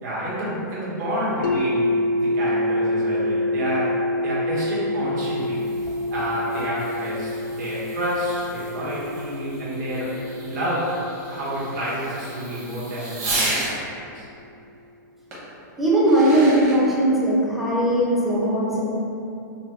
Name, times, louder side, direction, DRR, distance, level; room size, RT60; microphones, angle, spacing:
voice 1, 0.0-5.6 6.1-10.2 10.4-11.0 11.3-13.8 14.1-14.3, equal, 60° right, -8 dB, 1.2 m, -29 dB
sound 1, 1.4-13.4, left 1 dB, 75° left, 0.4 m, -27 dB
Fireworks, 5.1-13.8 15.3-15.4 15.9-16.8, right 2 dB, 30° right, 0.9 m, -34 dB
voice 2, 15.8-18.8, right 1 dB, ahead, -7 dB, 0.4 m, -19 dB
3.5 x 2.1 x 3.0 m, 2.7 s
hypercardioid pair, 155°, 10 cm